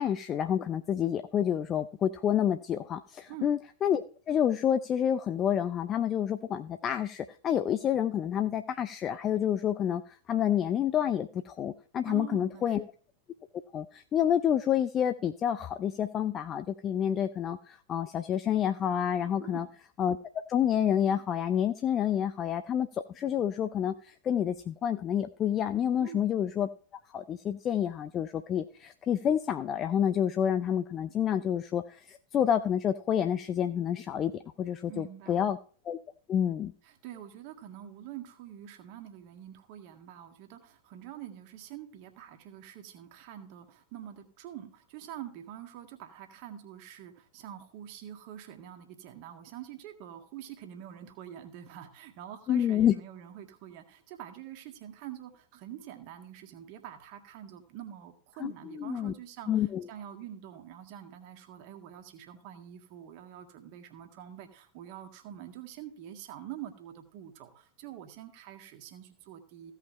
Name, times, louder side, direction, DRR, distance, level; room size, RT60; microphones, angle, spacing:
voice 1, 0.0-12.8 13.7-19.7 20.0-20.2 20.5-26.7 27.1-35.6 35.9-36.0 36.3-36.7 52.5-52.9 58.4-58.5 58.8-59.1 59.5-59.9, left 9 dB, 30° left, 10 dB, 0.5 m, -28 dB
voice 2, 12.1-12.8 19.4-19.7 26.0-26.2 34.9-35.5 36.8-69.7, right 11 dB, 45° right, 6 dB, 1.7 m, -46 dB
15.5 x 5.8 x 4.3 m, 0.43 s
figure-of-eight pair, 90°, 0 cm